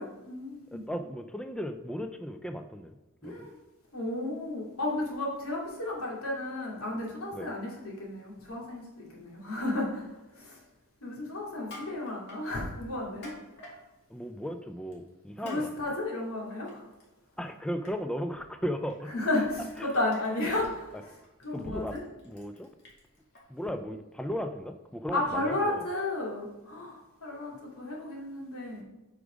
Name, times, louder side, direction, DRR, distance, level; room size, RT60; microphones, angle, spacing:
voice 1, 0.0-0.8 3.2-3.5 3.9-10.6 11.0-13.3 15.4-16.8 19.1-21.0 21.4-22.0 25.1-28.8, left 2 dB, 90° left, -3 dB, 2.5 m, -33 dB
voice 2, 0.7-3.0 3.2-3.5 7.3-7.5 14.1-15.7 17.4-19.1 19.8-20.0 21.5-22.0 22.2-22.7 23.5-25.9, equal, 5° left, 7 dB, 0.3 m, -36 dB
Crushing, 11.5-12.4 13.0-13.8 14.9-15.1 15.4-15.6 15.9-17.0 17.4-17.6 17.8-17.9 18.9-19.0 19.3-23.4, left 2 dB, 55° left, 2.4 m, -50 dB
8.2 x 5.0 x 5.1 m, 1.0 s
head